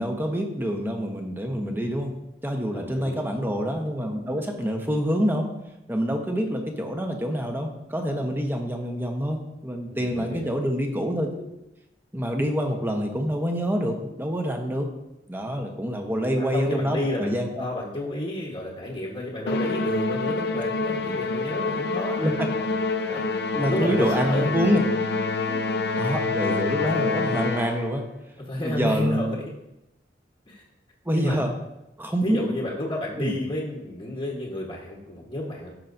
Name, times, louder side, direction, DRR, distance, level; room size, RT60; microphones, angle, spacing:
voice 1, 0.0-2.1 2.4-5.5 5.9-11.5 12.1-14.9 15.3-17.6 22.2-22.5 23.5-24.8 26.0-28.1 28.6-29.4 31.1-31.5 32.0-32.4 33.2-33.4, equal, 10° right, 3 dB, 1.0 m, -26 dB
voice 2, 2.7-3.3 9.9-10.6 16.3-22.3 23.1-23.2 23.6-24.5 25.5-25.6 28.4-29.4 30.5-30.6 31.1-31.4 32.2-35.7, left 1 dB, 30° left, -3 dB, 1.2 m, -31 dB
Musical instrument, 19.5-28.0, left 3 dB, 65° left, 0.6 m, -27 dB
15.0 x 5.7 x 2.6 m, 0.90 s
head